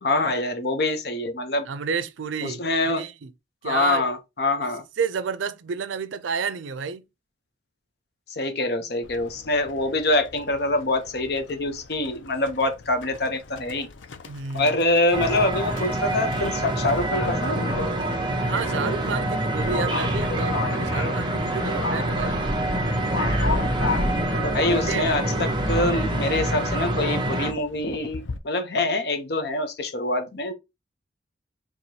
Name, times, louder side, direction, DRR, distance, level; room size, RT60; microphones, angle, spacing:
voice 1, 0.0-1.7 2.4-3.1 3.6-4.8 8.3-13.9 14.5-17.7 24.4-30.5, left 2 dB, 55° left, 0.8 m, -25 dB
voice 2, 1.7-3.1 3.6-4.0 5.0-7.1 14.3-14.7 18.4-22.5 24.7-25.1, right 5 dB, 90° right, 0.5 m, -30 dB
Livestock farm animals working animals, 9.0-28.4, left 4 dB, 90° left, 0.6 m, -37 dB
sound 1, 15.1-27.5, right 1 dB, 25° right, 0.8 m, -26 dB
4.7 x 3.0 x 2.8 m
head